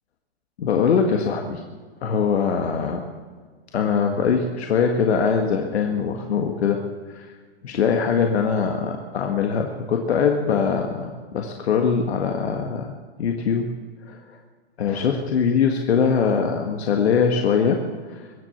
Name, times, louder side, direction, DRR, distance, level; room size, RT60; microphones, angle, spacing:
voice 1, 0.6-1.6 2.0-3.1 3.7-6.8 7.1-7.3 7.6-13.7 14.1-14.2 14.8-17.8 18.1-18.2, left 6 dB, 80° left, 3 dB, 1.8 m, -22 dB
22.5 x 7.9 x 7.2 m, 1.5 s
hypercardioid pair, 125°, 32 cm